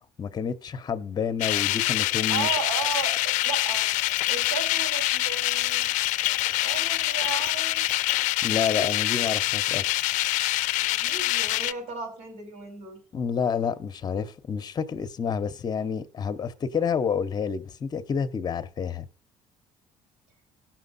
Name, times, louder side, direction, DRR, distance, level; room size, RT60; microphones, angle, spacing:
voice 1, 0.2-2.5 8.4-10.0 13.1-19.0, left 6 dB, 35° left, 0.8 m, -29 dB
sound 1, 1.4-11.7, left 17 dB, 85° left, 0.4 m, -25 dB
voice 2, 2.3-3.8 4.3-5.9 6.6-7.9 8.6-8.9 10.8-13.0, right 5 dB, 80° right, 4.6 m, -35 dB
17.0 x 6.0 x 4.1 m
cardioid pair, 115°, 13 cm